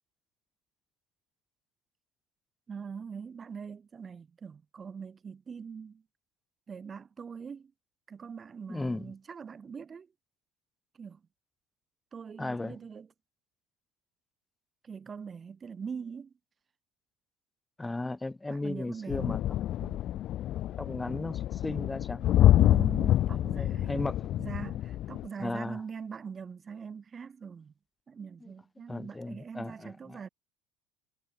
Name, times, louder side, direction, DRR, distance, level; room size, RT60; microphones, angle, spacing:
voice 1, 2.7-6.0 6.7-7.7 8.1-10.1 11.0-11.2 12.1-13.1 14.8-16.3 18.5-19.4 19.8-20.1 22.5-24.0 24.4-27.7 28.1-30.3, right 6 dB, 25° right, 6.3 m, -42 dB
voice 2, 8.7-9.1 12.4-12.8 17.8-19.4 20.8-22.5 23.3-24.4 25.4-25.8 28.4-28.5 28.9-30.2, left 2 dB, 10° left, 2.9 m, -36 dB
sound 1, 19.1-25.3, left 12 dB, 45° left, 1.0 m, -27 dB
supercardioid pair, 130°, 0 cm